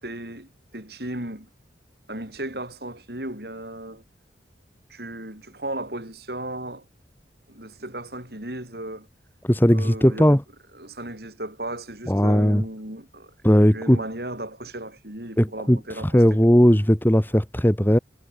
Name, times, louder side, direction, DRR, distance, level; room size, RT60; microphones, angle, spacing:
voice 1, 0.0-1.5 2.1-4.0 4.9-6.8 7.5-9.1 9.7-10.3 10.8-13.3 13.7-16.2, right 1 dB, 60° right, 6.2 m, -35 dB
voice 2, 9.4-10.4 12.1-12.6 13.4-14.0 15.4-15.8 16.1-18.0, equal, 10° left, 1.9 m, -17 dB
head